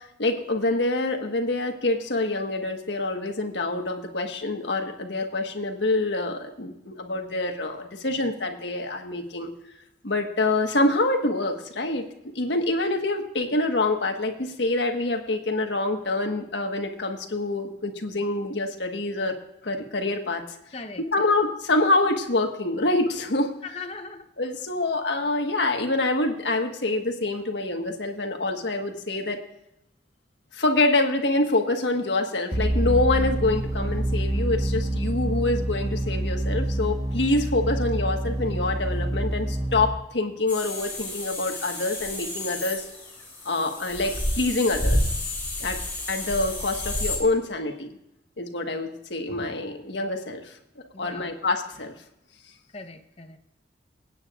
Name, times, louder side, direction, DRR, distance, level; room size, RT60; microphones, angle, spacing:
voice 1, 0.2-9.5 10.0-12.0 12.3-19.4 19.6-20.4 21.0-23.5 24.4-29.4 30.5-42.8 43.4-45.0 45.6-45.8 46.1-47.9 48.4-50.5 51.0-51.9, left 2 dB, 80° left, 4 dB, 1.5 m, -26 dB
voice 2, 20.7-21.3 23.6-24.2 50.9-51.3 52.7-53.4, left 3 dB, 35° left, 7 dB, 0.9 m, -39 dB
sound 1, 32.5-39.9, right 1 dB, 35° right, 2.0 m, -27 dB
sound 2, 40.5-47.2, left 1 dB, 10° left, 4.5 m, -30 dB
24.0 x 9.3 x 2.5 m, 0.86 s
head